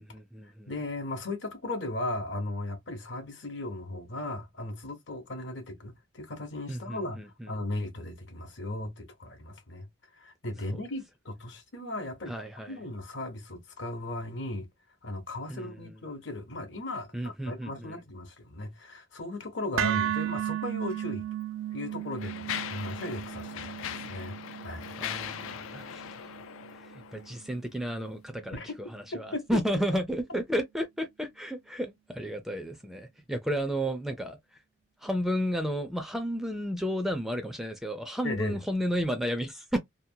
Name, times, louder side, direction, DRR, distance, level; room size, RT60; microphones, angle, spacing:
voice 1, 0.1-0.8 6.7-7.5 10.7-10.8 12.3-12.8 15.5-16.0 17.1-18.0 25.0-26.4 26.8-34.4 35.0-39.8, equal, ahead, 0.3 m, -32 dB
voice 2, 0.7-9.9 10.1-12.3 12.7-14.7 15.0-21.3 21.7-24.4 24.6-24.9 28.5-28.8 29.1-29.6 38.2-38.6, left 2 dB, 65° left, 0.9 m, -37 dB
sound 1, 19.8-27.9, right 12 dB, 90° right, 0.4 m, -35 dB
Mechanisms, 20.8-21.0 21.7-27.5, left 9 dB, 85° left, 0.4 m, -40 dB
2.8 x 2.1 x 2.6 m
head